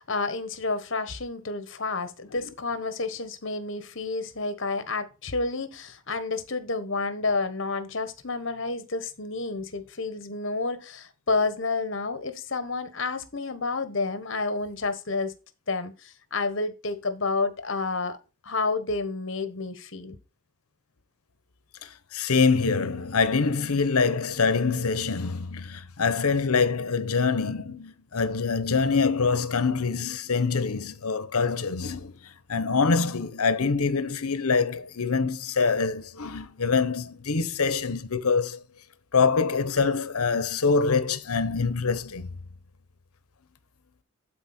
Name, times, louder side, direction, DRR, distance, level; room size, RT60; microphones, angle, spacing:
voice 1, 0.0-15.3 15.7-18.2 18.4-20.2, left 3 dB, 60° left, 1.2 m, -30 dB
voice 2, 21.8-32.2 32.5-38.6 39.1-42.3, left 4 dB, 85° left, 0.9 m, -25 dB
12.0 x 4.3 x 4.3 m
head